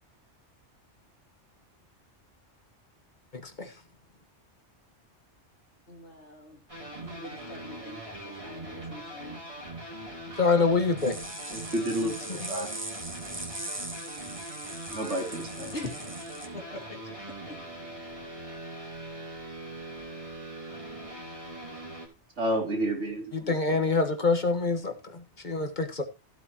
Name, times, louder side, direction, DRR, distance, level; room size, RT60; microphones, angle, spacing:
voice 1, 3.4-3.7 10.4-11.2 23.3-26.0, left 4 dB, 40° left, 1.6 m, -26 dB
voice 2, 5.9-6.6 7.0-9.5 15.7-17.6, left 2 dB, 70° left, 3.0 m, -44 dB
sound 1, 6.7-22.1, right 1 dB, 30° right, 3.1 m, -41 dB
sound 2, 11.0-16.5, right 1 dB, 10° right, 1.2 m, -40 dB
voice 3, 11.5-12.7 14.9-15.7 22.4-23.8, right 1 dB, 80° right, 3.4 m, -31 dB
15.0 x 8.3 x 3.0 m
omnidirectional pair, 1.2 m